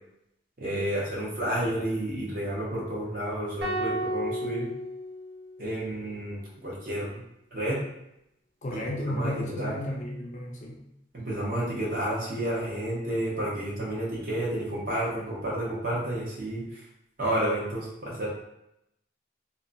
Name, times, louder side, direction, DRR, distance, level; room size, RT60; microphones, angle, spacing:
voice 1, 0.6-4.7 5.6-7.2 7.5-7.8 8.7-9.7 11.1-16.8 17.2-18.3, right 1 dB, 50° right, -5 dB, 0.8 m, -31 dB
sound 1, 3.6-5.9, equal, 80° right, 0.8 m, -33 dB
voice 2, 8.6-10.8, left 1 dB, 40° left, -1 dB, 0.4 m, -33 dB
2.6 x 2.2 x 2.5 m, 0.81 s
head